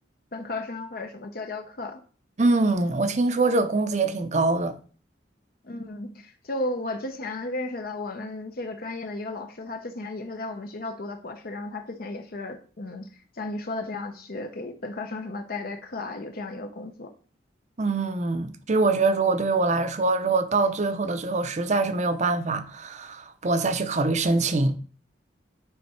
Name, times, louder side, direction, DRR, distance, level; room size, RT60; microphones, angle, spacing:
voice 1, 0.3-2.0 5.6-13.1 13.4-17.1, left 2 dB, 55° left, 0.7 m, -34 dB
voice 2, 2.4-4.8 17.8-24.7, right 3 dB, 40° right, 0.6 m, -24 dB
9.1 x 3.5 x 4.3 m
head